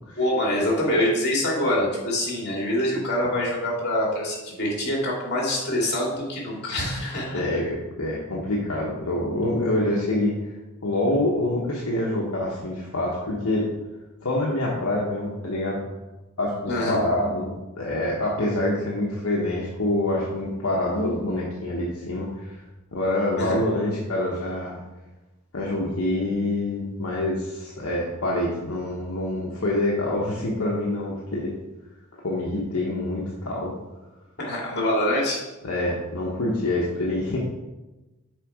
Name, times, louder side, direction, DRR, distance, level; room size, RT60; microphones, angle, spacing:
voice 1, 0.2-7.4 16.7-17.0 23.4-23.6 34.4-35.4, left 1 dB, 50° left, -3 dB, 2.4 m, -25 dB
voice 2, 7.3-10.5 10.8-13.7 14.2-15.8 16.4-22.6 22.9-24.8 25.5-31.5 32.2-33.7 35.6-37.4, left 1 dB, 70° left, -4 dB, 1.1 m, -26 dB
6.6 x 4.5 x 4.8 m, 1.1 s
head